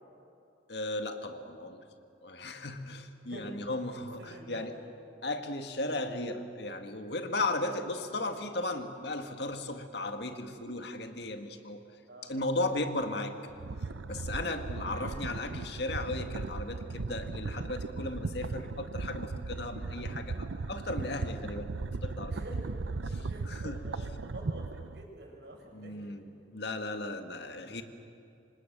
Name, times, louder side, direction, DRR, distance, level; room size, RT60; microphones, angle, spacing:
voice 1, 0.7-1.8 2.2-4.7 5.2-11.8 12.2-13.4 14.1-22.4 23.1-23.8 25.7-26.2 26.5-27.8, left 2 dB, 60° left, 6 dB, 1.9 m, -36 dB
voice 2, 3.9-4.8 12.1-12.4 22.3-22.7 23.2-26.1, right 1 dB, 60° right, 1 dB, 6.4 m, -48 dB
sound 1, 12.6-14.3 15.0-16.9, left 1 dB, 20° left, 2.4 m, -57 dB
sound 2, 13.5-25.0, right 3 dB, 85° right, 0.7 m, -37 dB
27.5 x 25.5 x 6.8 m, 2.7 s
head